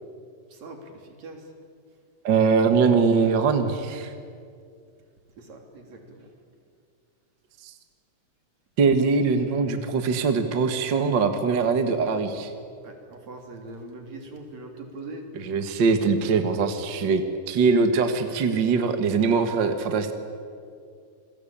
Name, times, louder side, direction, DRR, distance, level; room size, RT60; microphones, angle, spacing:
voice 1, 0.5-1.5 5.4-6.3 12.8-15.3, right 2 dB, 65° right, 3 dB, 4.3 m, -42 dB
voice 2, 2.2-4.1 7.6-7.7 8.8-12.5 15.4-20.1, right 5 dB, 45° right, 7 dB, 1.9 m, -22 dB
28.5 x 21.5 x 8.7 m, 2.3 s
omnidirectional pair, 3.4 m